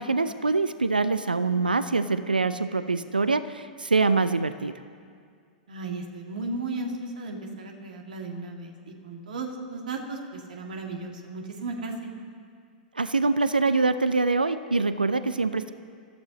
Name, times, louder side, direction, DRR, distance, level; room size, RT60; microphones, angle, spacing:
voice 1, 0.0-4.7 13.0-15.7, right 3 dB, 85° right, 13 dB, 0.5 m, -24 dB
voice 2, 5.7-12.1, right 3 dB, 65° right, 2 dB, 2.1 m, -35 dB
24.5 x 14.5 x 3.0 m, 2.1 s
figure-of-eight pair, 100°, 5 cm